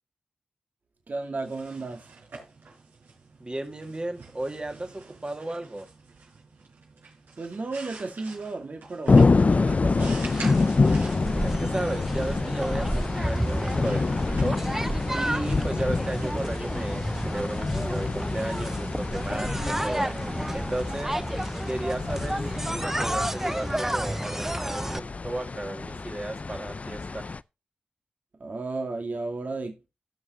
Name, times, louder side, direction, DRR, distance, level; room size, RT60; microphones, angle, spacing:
voice 1, 1.1-2.0 7.4-10.1 28.4-29.9, right 3 dB, 55° right, 2.4 m, -34 dB
sound 1, 1.3-16.9, right 4 dB, 75° right, 4.9 m, -48 dB
voice 2, 3.4-5.8 11.4-14.7 15.1-20.1 20.5-21.2 21.7-27.3, right 1 dB, 30° right, 2.4 m, -34 dB
sound 2, 9.1-27.4, left 3 dB, 40° left, 0.4 m, -27 dB
sound 3, 9.9-25.0, right 1 dB, 10° right, 0.5 m, -31 dB
17.0 x 6.2 x 3.0 m
cardioid pair, 45°, 3 cm